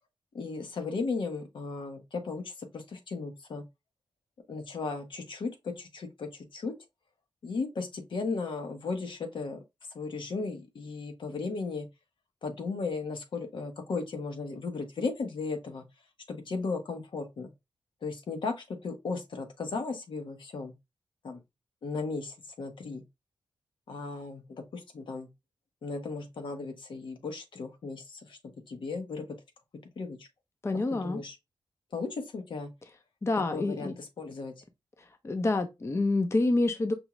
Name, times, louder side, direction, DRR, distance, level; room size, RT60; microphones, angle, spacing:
voice 1, 0.3-3.6 4.5-6.7 7.4-9.6 9.9-11.9 12.4-15.8 16.3-17.5 18.0-20.7 21.2-21.4 21.8-23.0 23.9-25.3 25.8-28.4 28.7-29.3 30.0-30.3 30.9-31.3 31.9-32.7 33.5-34.5, left 4 dB, 75° left, 1.0 m, -36 dB
voice 2, 30.6-31.2 33.2-33.9 35.2-36.9, left 2 dB, 30° left, 0.6 m, -27 dB
5.3 x 2.3 x 3.0 m
cardioid pair, 65°, 9 cm